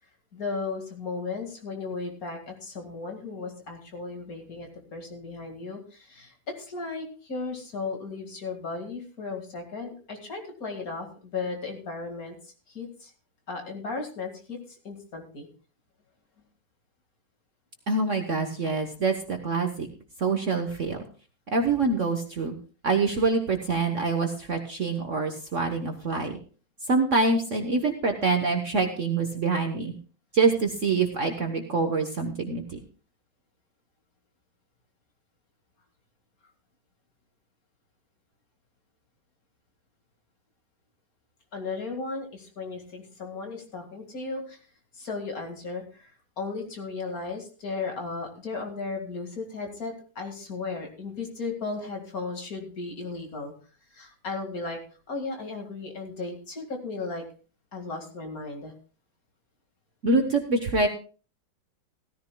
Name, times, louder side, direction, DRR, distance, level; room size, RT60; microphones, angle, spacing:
voice 1, 0.3-13.1 13.5-15.5 41.5-44.6 44.9-53.5 53.9-54.8 55.1-57.2 57.7-58.7, left 4 dB, 45° left, 3 dB, 2.4 m, -35 dB
voice 2, 17.9-19.9 20.2-21.0 21.5-22.5 22.8-26.4 26.9-29.9 30.3-32.6 60.0-60.9, right 3 dB, 45° right, 5 dB, 1.2 m, -25 dB
16.5 x 14.0 x 2.3 m, 0.37 s
omnidirectional pair, 2.1 m